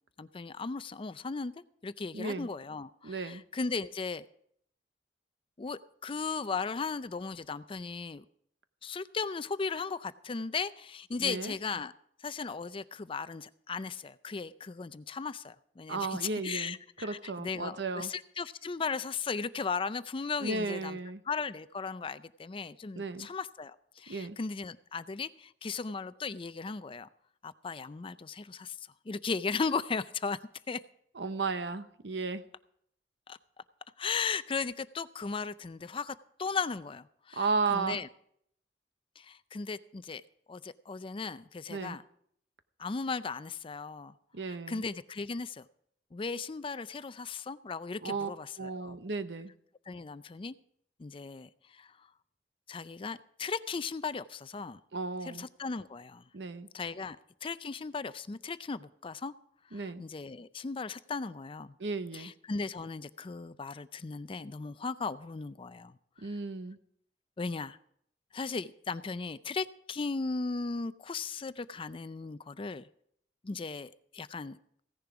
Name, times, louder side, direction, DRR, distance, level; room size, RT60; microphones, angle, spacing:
voice 1, 0.2-4.2 5.6-8.2 8.8-11.9 12.2-21.0 21.3-27.1 27.4-28.8 29.1-30.4 30.7-30.8 33.3-33.4 34.0-38.1 39.2-40.2 40.5-42.0 42.8-44.1 44.5-45.7 46.1-48.9 49.9-50.6 51.0-51.9 52.7-54.8 55.3-56.2 56.7-59.3 59.7-61.7 62.1-66.0 67.4-67.8 68.3-72.9 73.4-74.6, left 4 dB, 30° left, 15 dB, 0.4 m, -37 dB
voice 2, 2.1-2.5 3.0-3.4 11.2-11.6 15.9-18.1 20.4-21.2 23.0-23.3 24.1-24.4 31.1-32.4 37.4-38.0 41.7-42.0 44.3-44.8 48.0-48.3 48.6-49.5 54.9-55.5 56.3-56.7 59.7-60.0 61.8-62.3 66.2-66.8, right 4 dB, 85° right, 11 dB, 0.9 m, -34 dB
16.0 x 10.5 x 4.9 m, 0.67 s
head